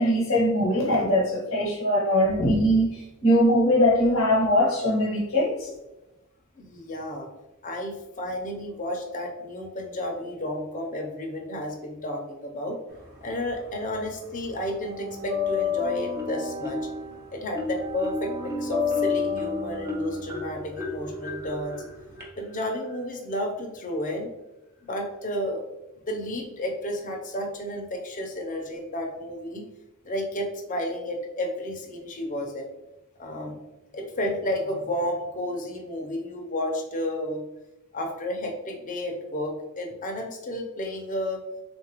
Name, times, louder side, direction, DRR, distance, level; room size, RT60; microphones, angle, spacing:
voice 1, 0.0-5.7, equal, 80° left, -4 dB, 0.9 m, -21 dB
voice 2, 6.5-7.3 7.6-12.8 13.2-16.8 17.3-21.8 22.4-24.3 24.8-25.6 26.1-29.6 30.0-32.7 33.2-33.6 33.9-37.4 37.9-41.4, left 1 dB, 40° left, 2 dB, 0.6 m, -32 dB
sound 1, 12.9-14.1 14.3-22.2, left 7 dB, 50° right, 0.9 m, -31 dB
Marimba xylophone, 16.2-17.1 17.5-23.0, equal, 10° right, 0.7 m, -34 dB
3.7 x 2.4 x 3.0 m, 0.98 s
head